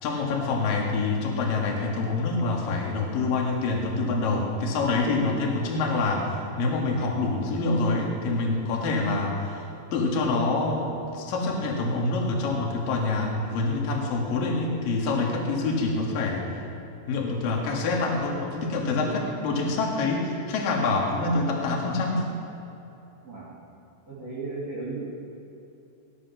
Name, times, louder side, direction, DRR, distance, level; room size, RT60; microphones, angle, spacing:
voice 1, 0.0-9.6 9.9-16.4 17.1-22.2, left 3 dB, 55° left, 0 dB, 3.1 m, -26 dB
voice 2, 23.2-23.6 24.1-25.1, right 3 dB, 40° right, -7 dB, 3.2 m, -35 dB
19.5 x 11.0 x 6.1 m, 2.9 s
omnidirectional pair, 5.7 m